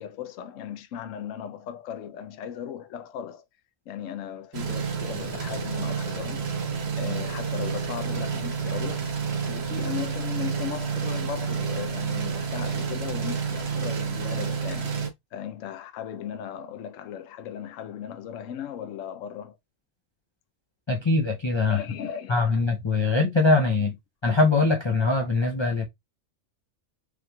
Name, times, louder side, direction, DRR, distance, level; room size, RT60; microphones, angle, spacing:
voice 1, 0.0-3.4 3.9-6.5 7.0-9.1 9.5-14.9 15.3-19.6 21.7-22.4, left 9 dB, 70° left, 1.0 m, -37 dB
sound 1, 4.5-15.1, right 6 dB, 55° right, 1.1 m, -29 dB
voice 2, 20.9-21.8 22.3-24.0 24.2-25.8, left 3 dB, 40° left, 0.4 m, -22 dB
5.0 x 3.2 x 2.3 m
omnidirectional pair, 1.4 m